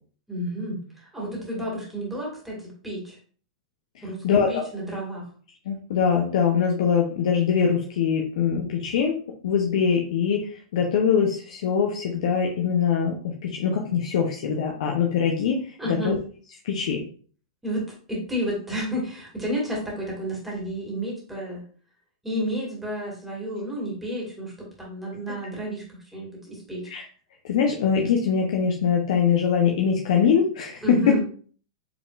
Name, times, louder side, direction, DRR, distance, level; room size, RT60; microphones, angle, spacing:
voice 1, 0.3-3.2 4.0-5.3 15.8-16.1 17.6-21.6 22.2-26.9 30.8-31.3, equal, 5° right, -4 dB, 1.8 m, -31 dB
voice 2, 4.2-4.6 5.7-9.1 9.4-16.2 16.6-17.0 26.9-27.0 27.4-31.2, left 7 dB, 70° left, 2 dB, 0.7 m, -23 dB
4.7 x 3.6 x 2.5 m, 0.44 s
hypercardioid pair, 140°, 4 cm